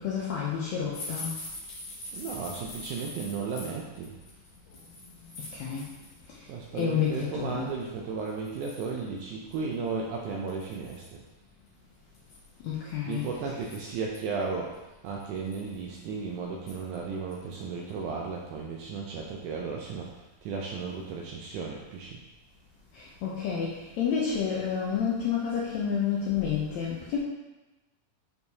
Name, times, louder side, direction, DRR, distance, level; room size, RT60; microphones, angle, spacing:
voice 1, 0.0-1.4 5.3-5.9 6.3-6.5 6.7-7.7 12.6-13.3 22.9-27.2, left 7 dB, 85° left, -4 dB, 1.5 m, -30 dB
sound 1, 0.9-6.3 6.6-7.2 7.8-7.9 8.3-9.0 9.5-9.6 9.9-10.0 10.5-11.1 12.1-14.2 14.7-14.8 15.2-15.8 16.7-17.0 17.3-17.5 17.9-18.0, left 2 dB, 60° left, 2.9 m, -43 dB
voice 2, 2.1-4.1 6.5-11.2 13.1-22.2, right 5 dB, 85° right, -1 dB, 1.8 m, -35 dB
8.2 x 4.6 x 2.8 m, 1.1 s
omnidirectional pair, 4.1 m